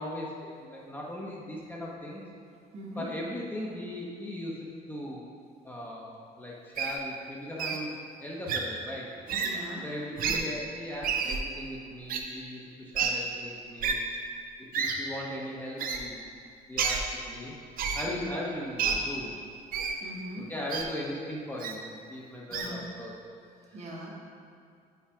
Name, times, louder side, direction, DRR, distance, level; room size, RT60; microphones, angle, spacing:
voice 1, 0.0-2.2 3.0-5.2 5.6-7.9 8.2-9.1 9.8-14.0 14.8-16.2 16.7-17.5 17.9-19.4 20.4-23.1 23.7-23.8, left 1 dB, 10° left, -4 dB, 0.8 m, -38 dB
voice 2, 2.7-3.1 9.4-9.8 18.1-18.3 20.0-20.5 22.5-22.8 23.7-24.1, right 1 dB, 40° right, -2 dB, 1.2 m, -41 dB
Wild animals, 6.8-7.0 7.6-7.8 8.5-8.6 9.3-9.5 10.2-10.4 11.0-11.4 12.1-12.2 12.9-13.1 13.8-13.9 14.7-14.9 15.8-16.0 16.8-17.0 17.8-18.0 18.8-18.9 19.7-19.9 20.7-20.8 21.6-21.7 22.5-22.7, right 7 dB, 60° right, 0.6 m, -29 dB
5.7 x 4.0 x 4.8 m, 2.4 s
cardioid pair, 110°, 17 cm